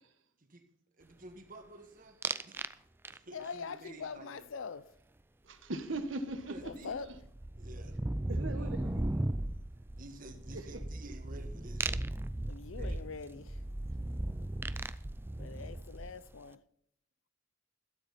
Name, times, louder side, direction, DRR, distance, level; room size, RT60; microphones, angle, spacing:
voice 1, 1.0-2.2 2.4-2.6 3.1-4.5 6.5-7.0 7.6-7.9 8.4-9.2 10.0-11.9 12.8-13.0, right 2 dB, 45° right, 1.7 m, -51 dB
sound 1, 2.2-2.7 3.0-3.5 6.0-6.1 6.3-16.3, right 1 dB, 10° right, 0.4 m, -37 dB
voice 2, 3.3-4.9 6.6-7.1 12.5-13.6 15.4-16.6, left 5 dB, 80° left, 0.5 m, -43 dB
voice 3, 5.4-6.7 7.1-7.2 8.3-9.2 10.5-10.8, right 2 dB, 75° right, 1.3 m, -40 dB
12.5 x 12.5 x 4.2 m
head